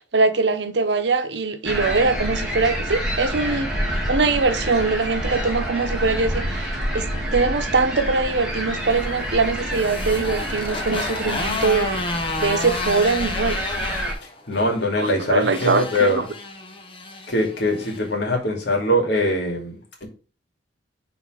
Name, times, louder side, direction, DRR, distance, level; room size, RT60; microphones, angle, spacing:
voice 1, 0.1-3.7 4.1-7.1 7.3-12.0 12.4-13.6 15.0-16.3, right 4 dB, 85° right, 0.9 m, -22 dB
sound 1, 1.6-14.1, equal, 5° right, 2.1 m, -28 dB
Motorcycle, 8.6-18.0, left 2 dB, 30° left, 1.1 m, -31 dB
voice 2, 14.5-16.2 17.3-20.1, left 1 dB, 75° left, 2.4 m, -22 dB
6.1 x 4.0 x 4.8 m
head